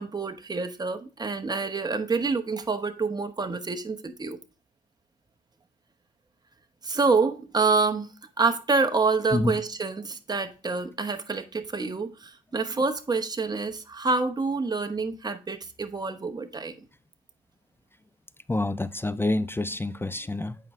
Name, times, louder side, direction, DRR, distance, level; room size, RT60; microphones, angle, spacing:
voice 1, 0.0-4.4 6.8-8.1 8.4-16.8, right 4 dB, 20° right, 1.0 m, -27 dB
voice 2, 18.5-20.6, left 2 dB, 10° left, 0.4 m, -28 dB
8.7 x 4.9 x 3.1 m
cardioid pair, 90°, 20 cm